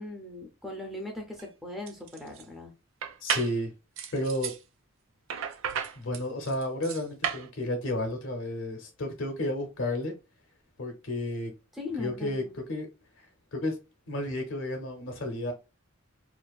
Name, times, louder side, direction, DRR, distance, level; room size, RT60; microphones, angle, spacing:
voice 1, 0.0-2.7 11.7-12.5, left 2 dB, ahead, 0.5 m, -39 dB
sound 1, 1.3-1.5 1.9-2.4 3.0-3.6 4.0-4.6 5.3-7.5, right 7 dB, 65° right, 0.3 m, -33 dB
voice 2, 3.2-3.7 4.1-4.5 5.9-10.1 10.8-11.5 12.0-12.4 12.7-12.9 13.2-13.3 13.5-13.8 14.1-15.5, left 1 dB, 65° left, 0.6 m, -32 dB
2.5 x 2.3 x 2.3 m
head